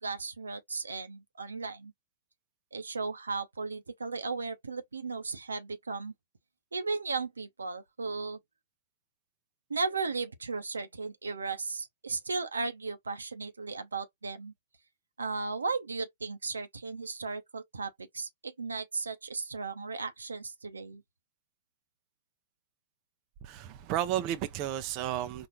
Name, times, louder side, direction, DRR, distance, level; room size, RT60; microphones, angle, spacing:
voice 1, 0.0-1.9 2.7-6.1 6.7-8.4 9.7-14.5 15.2-21.0, right 4 dB, 80° right, 0.7 m, -36 dB
voice 2, 23.4-25.5, right 12 dB, 35° right, 0.5 m, -32 dB
4.3 x 2.4 x 3.0 m
figure-of-eight pair, 115°, 0 cm